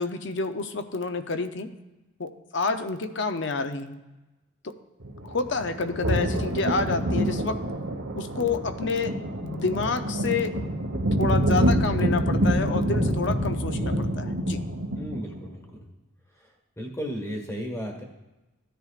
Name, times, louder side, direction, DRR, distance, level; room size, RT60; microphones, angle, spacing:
voice 1, 0.0-1.7 2.2-4.0 4.6-4.7 5.2-7.6 8.1-9.1 9.4-10.5 11.2-14.6, left 4 dB, 55° left, 9 dB, 0.6 m, -29 dB
sound 1, 5.0-15.4, right 1 dB, 80° right, 1.3 m, -26 dB
voice 2, 14.9-15.7 16.3-18.0, equal, 15° left, 2 dB, 1.4 m, -35 dB
15.5 x 10.0 x 2.4 m, 1.0 s
head